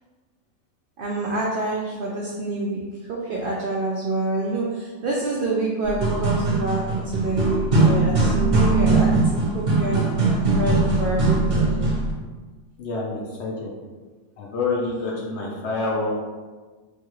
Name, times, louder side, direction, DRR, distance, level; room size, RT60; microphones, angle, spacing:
voice 1, 1.0-2.8 3.1-10.0 10.5-11.7, right 2 dB, 80° right, -3 dB, 0.4 m, -27 dB
sound 1, 5.8-12.1, right 3 dB, 50° right, 0.8 m, -20 dB
voice 2, 12.8-13.7 14.4-16.1, left 3 dB, 65° left, -3 dB, 0.7 m, -27 dB
3.2 x 2.3 x 3.0 m, 1.3 s
omnidirectional pair, 1.5 m